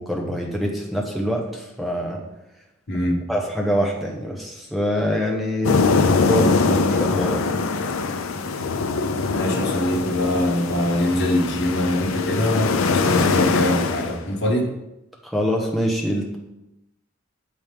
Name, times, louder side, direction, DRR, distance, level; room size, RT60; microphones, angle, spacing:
voice 1, 0.0-2.2 3.3-5.8 6.3-7.6 15.2-16.4, equal, ahead, -1 dB, 0.9 m, -25 dB
voice 2, 2.9-3.2 9.3-14.7, left 1 dB, 55° left, 1 dB, 1.2 m, -23 dB
sound 1, 5.6-14.2, left 4 dB, 85° left, 0.5 m, -22 dB
7.2 x 4.5 x 3.4 m, 0.90 s
head